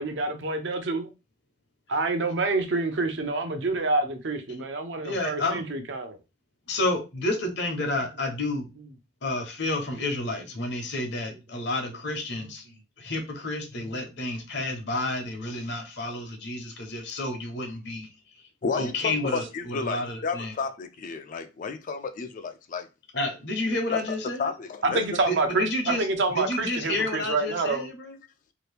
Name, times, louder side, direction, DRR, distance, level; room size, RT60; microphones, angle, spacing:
voice 1, 0.0-1.1 1.9-6.2 24.8-27.9, right 3 dB, 70° right, 0.6 m, -27 dB
voice 2, 5.0-5.6 6.7-8.7 9.2-12.6 13.0-18.1 18.8-20.5 23.1-24.5 25.3-26.1 26.3-28.2, left 2 dB, 65° left, 0.9 m, -30 dB
voice 3, 18.6-22.9 23.9-24.0 24.4-25.0, left 4 dB, 45° left, 0.4 m, -32 dB
2.8 x 2.5 x 3.3 m
head